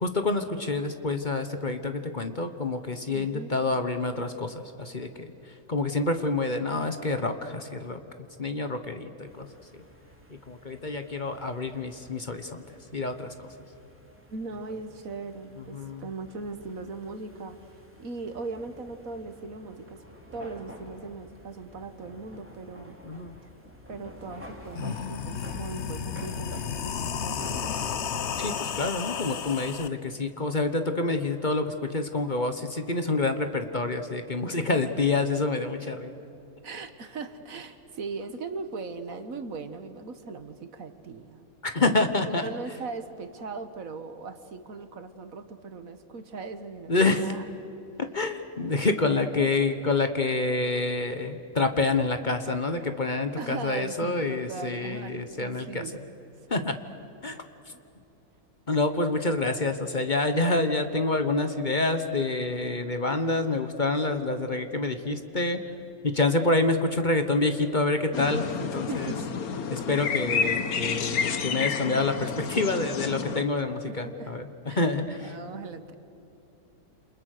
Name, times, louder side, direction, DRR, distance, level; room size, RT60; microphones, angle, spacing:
voice 1, 0.0-8.0 8.4-9.5 9.7-9.8 10.3-12.6 12.9-13.5 15.7-16.0 23.0-23.3 28.4-36.3 41.6-42.4 46.9-47.3 48.0-55.8 56.5-56.7 57.2-57.4 58.7-65.6 66.0-69.1 69.7-75.3, left 3 dB, 35° left, 8 dB, 1.3 m, -27 dB
voice 2, 3.1-3.5 14.3-20.0 20.3-23.0 23.9-28.0 34.5-34.6 36.6-41.4 42.3-47.4 48.6-48.7 53.4-56.0 56.5-56.8 68.9-69.3 73.9-74.3 74.7-74.9 75.2-75.9, right 4 dB, 70° right, 9 dB, 1.8 m, -39 dB
sound 1, 9.3-28.0, equal, 10° right, 2.8 m, -49 dB
sound 2, 24.2-24.3 24.6-29.9, left 7 dB, 55° left, 1.1 m, -32 dB
sound 3, 68.1-73.4, left 6 dB, 85° left, 1.7 m, -30 dB
29.0 x 27.5 x 6.7 m, 3.0 s
omnidirectional pair, 1.5 m